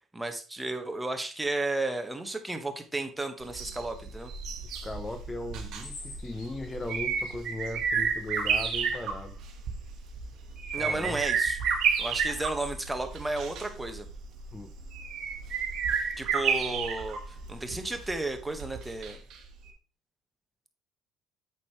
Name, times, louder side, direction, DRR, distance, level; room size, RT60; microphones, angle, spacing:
voice 1, 0.1-4.3 10.7-11.6 12.0-14.1 16.2-17.2 17.5-19.2, right 2 dB, 10° right, 1.5 m, -33 dB
sound 1, 3.4-19.4 19.7-19.8, right 6 dB, 60° right, 1.6 m, -31 dB
voice 2, 4.8-9.4 10.8-11.2 14.5-14.7, left 2 dB, 20° left, 0.8 m, -38 dB
sound 2, 5.8-7.8 11.8-13.1, left 3 dB, 75° left, 3.6 m, -47 dB
8.4 x 6.5 x 3.2 m
hypercardioid pair, 65°, 0 cm